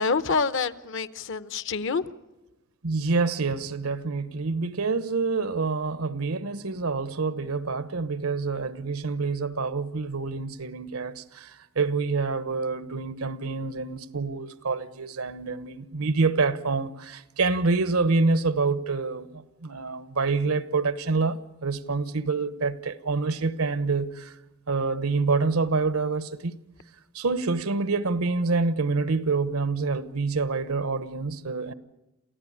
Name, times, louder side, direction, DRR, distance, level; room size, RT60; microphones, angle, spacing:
voice 1, 0.0-2.1, left 4 dB, 60° left, 0.8 m, -27 dB
voice 2, 2.8-11.5 11.8-24.3 24.7-26.5 27.1-31.7, right 4 dB, 85° right, 1.0 m, -27 dB
28.5 x 15.0 x 8.6 m
head